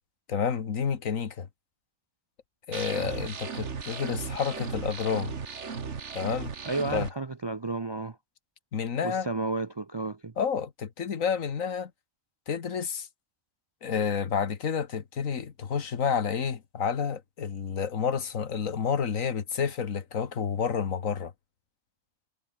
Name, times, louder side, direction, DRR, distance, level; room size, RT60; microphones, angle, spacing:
voice 1, 0.3-1.5 2.7-5.3 6.1-6.5 6.9-7.1 8.7-9.3 10.4-11.9 12.5-13.1 13.8-21.3, left 6 dB, 90° left, 1.9 m, -30 dB
sound 1, 2.7-7.1, right 5 dB, 60° right, 1.9 m, -36 dB
voice 2, 6.7-8.2 9.0-10.3, right 3 dB, 35° right, 0.4 m, -32 dB
omnidirectional pair, 1.3 m